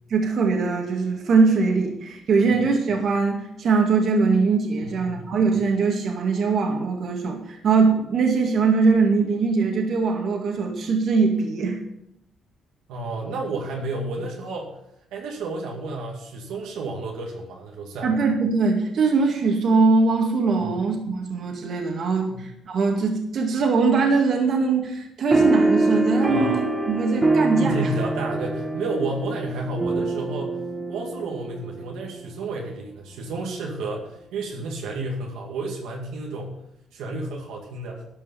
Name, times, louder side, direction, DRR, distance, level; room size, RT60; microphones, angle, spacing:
voice 1, 0.1-11.8 18.0-27.9, right 4 dB, 60° right, 2 dB, 2.2 m, -21 dB
voice 2, 12.9-14.7 15.1-18.1 20.6-20.7 22.3-22.4 26.3-26.6 27.6-30.6 30.9-36.5 36.9-38.0, right 2 dB, 90° right, -1 dB, 2.2 m, -31 dB
sound 1, 25.3-32.2, right 2 dB, 15° right, 1.7 m, -24 dB
12.5 x 5.5 x 7.0 m, 0.80 s
cardioid pair, 90°, 0 cm